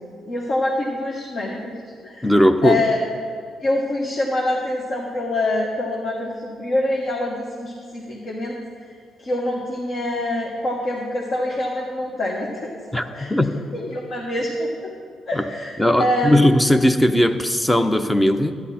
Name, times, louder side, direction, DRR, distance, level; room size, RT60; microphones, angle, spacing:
voice 1, 0.2-1.7 2.0-2.3 2.6-3.0 3.6-8.6 9.2-13.3 13.7-14.9 15.3-16.3, left 1 dB, 55° left, -2 dB, 1.4 m, -25 dB
voice 2, 2.2-2.8 12.9-13.6 15.3-15.4 15.8-18.5, equal, 10° left, 9 dB, 0.6 m, -18 dB
11.5 x 10.5 x 4.3 m, 2.1 s
cardioid pair, 90°, 0 cm